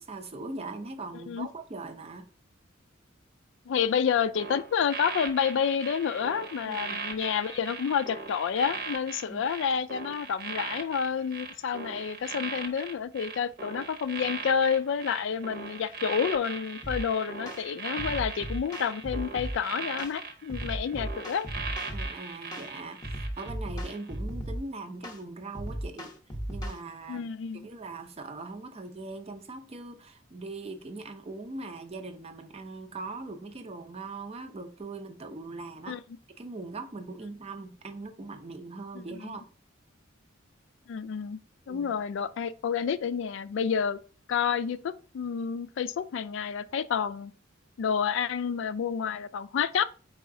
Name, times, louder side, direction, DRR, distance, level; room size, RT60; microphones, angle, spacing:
voice 1, 0.0-2.3 6.6-7.0 9.3-9.4 21.9-26.1 26.5-27.3 27.6-36.0 36.3-39.4 41.7-42.0, right 3 dB, 30° right, 0.5 m, -41 dB
voice 2, 3.7-21.5 27.1-27.7 35.9-36.0 38.9-39.3 40.9-41.4 41.7-44.0 44.3-47.3 47.8-49.8, left 7 dB, 65° left, 0.3 m, -29 dB
sound 1, 4.3-23.5 23.8-24.1, right 4 dB, 50° right, 0.9 m, -39 dB
sound 2, 16.8-17.0 17.5-17.6 18.0-19.6 20.0-20.2 20.5-22.1 22.5-22.7 23.0-24.6 25.0-25.2 25.5-26.8, right 1 dB, 20° left, 0.8 m, -36 dB
4.6 x 4.1 x 2.6 m
head